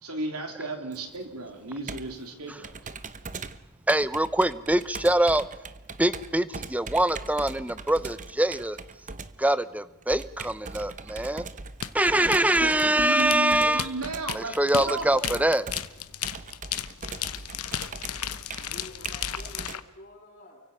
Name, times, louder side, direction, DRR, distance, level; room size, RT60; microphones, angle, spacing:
voice 1, 0.0-2.7 12.2-12.6 13.0-15.4, right 2 dB, 85° right, 5 dB, 3.6 m, -34 dB
Computer keyboard, 0.9-19.8, right 4 dB, 35° right, 0.9 m, -41 dB
voice 2, 3.9-5.4 6.0-8.8 9.4-11.4 11.9-13.8 14.3-15.6, right 1 dB, 5° right, 15 dB, 0.7 m, -24 dB
sound 1, 11.8-19.8, left 10 dB, 85° left, 1.0 m, -34 dB
voice 3, 18.6-20.6, left 1 dB, 50° left, -7 dB, 7.0 m, -48 dB
29.5 x 24.0 x 5.6 m, 0.99 s
head